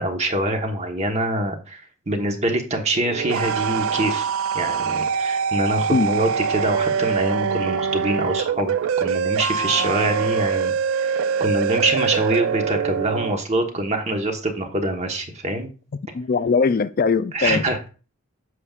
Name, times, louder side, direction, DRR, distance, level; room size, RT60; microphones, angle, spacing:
voice 1, 0.0-15.7 17.3-17.9, right 1 dB, 30° right, 1.3 m, -25 dB
sound 1, 2.9-13.3, right 6 dB, 70° right, 0.4 m, -24 dB
voice 2, 16.1-17.6, left 4 dB, 45° left, 0.3 m, -20 dB
9.6 x 6.9 x 2.4 m
head